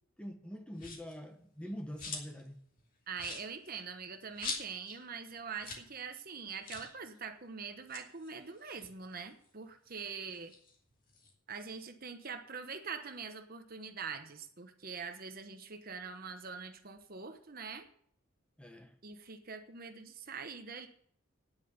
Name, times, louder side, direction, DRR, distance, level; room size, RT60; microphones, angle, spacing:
voice 1, 0.2-2.6 18.6-18.9, equal, 5° left, 5 dB, 1.2 m, -45 dB
sound 1, 0.8-1.2 1.6-2.5 2.8-2.9 3.1-5.0 5.3-5.4 5.6-5.9 6.2-6.3 6.6-7.0 7.7-9.5 9.9-11.3, left 4 dB, 40° left, 2.6 m, -44 dB
voice 2, 3.1-10.5 11.5-17.9 19.0-20.9, right 5 dB, 45° right, 7 dB, 1.1 m, -44 dB
10.0 x 9.1 x 8.2 m, 0.64 s
head